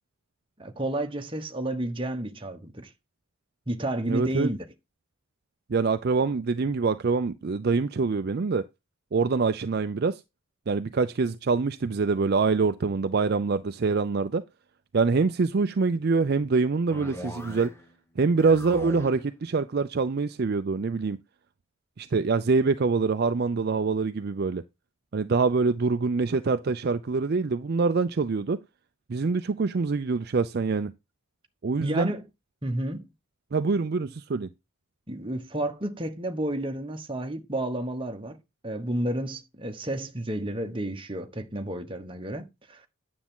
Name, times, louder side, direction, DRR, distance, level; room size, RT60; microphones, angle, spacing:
voice 1, 0.6-2.9 3.7-4.6 31.8-32.2 32.6-33.1 35.1-38.4 38.6-42.9, right 1 dB, 25° right, 1.1 m, -31 dB
voice 2, 4.1-4.5 5.7-8.7 9.1-10.2 10.7-14.4 14.9-17.7 18.2-21.2 22.0-24.6 25.1-28.6 29.1-30.9 31.6-32.1 33.5-34.5, right 4 dB, 45° right, 0.4 m, -25 dB
sound 1, 16.9-17.9 18.2-19.3, left 1 dB, 10° left, 1.1 m, -40 dB
9.7 x 7.1 x 3.7 m
head